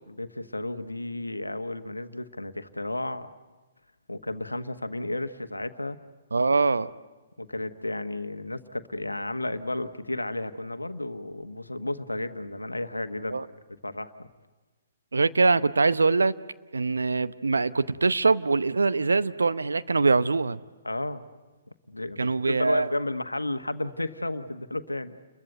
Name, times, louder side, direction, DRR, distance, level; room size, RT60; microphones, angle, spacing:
voice 1, 0.2-3.3 4.1-6.0 7.4-13.4 13.8-14.3 20.8-21.2 21.9-25.2, left 2 dB, 90° left, 9 dB, 1.3 m, -32 dB
voice 2, 6.3-6.9 13.3-13.5 15.1-16.3 16.7-20.6 22.2-22.9, right 3 dB, 75° right, 14 dB, 0.8 m, -23 dB
29.5 x 22.5 x 8.0 m, 1.3 s
figure-of-eight pair, 125°, 0 cm